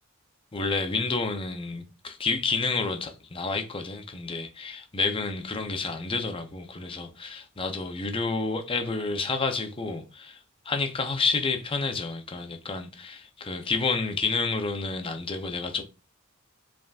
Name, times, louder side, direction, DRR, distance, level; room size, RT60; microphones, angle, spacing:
voice 1, 0.5-15.8, left 4 dB, 25° left, 0.6 m, -30 dB
5.0 x 3.5 x 2.4 m
head